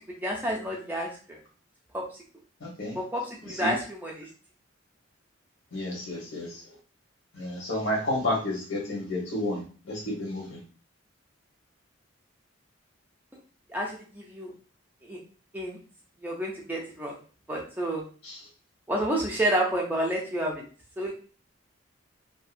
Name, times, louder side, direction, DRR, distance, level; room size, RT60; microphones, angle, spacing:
voice 1, 0.2-1.4 1.9-2.0 2.9-4.3 13.7-14.5 15.0-15.2 15.5-15.8 16.2-17.2 17.5-18.0 18.9-20.6 21.0-21.1, right 1 dB, 10° right, -2 dB, 0.5 m, -29 dB
voice 2, 2.6-3.0 3.6-3.7 5.7-6.5 7.4-9.6 9.9-10.6 18.2-18.4, left 1 dB, 70° left, -2 dB, 1.2 m, -30 dB
2.7 x 2.5 x 2.5 m, 0.39 s
head